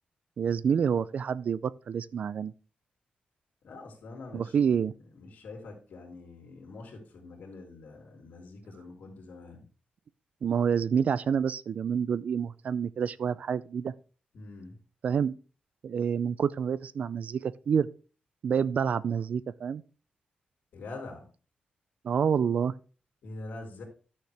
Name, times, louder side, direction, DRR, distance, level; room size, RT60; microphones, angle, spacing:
voice 1, 0.4-2.5 4.3-4.9 10.4-13.9 15.0-15.3 15.8-17.9 18.4-19.8 22.0-22.7, right 7 dB, 60° right, 0.4 m, -28 dB
voice 2, 3.6-4.7 5.1-9.6 14.3-14.8 20.7-21.3 23.2-23.8, left 2 dB, 75° left, 2.9 m, -44 dB
11.5 x 6.5 x 3.4 m
wide cardioid pair, 125°, 3 cm